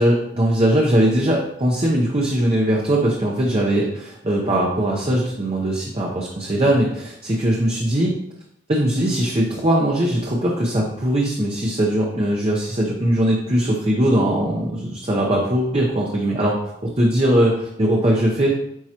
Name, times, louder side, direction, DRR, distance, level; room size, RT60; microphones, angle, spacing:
voice 1, 0.0-8.1 8.7-16.6 17.0-18.5, right 1 dB, 30° right, -2 dB, 0.8 m, -20 dB
9.4 x 4.7 x 2.9 m, 0.78 s
head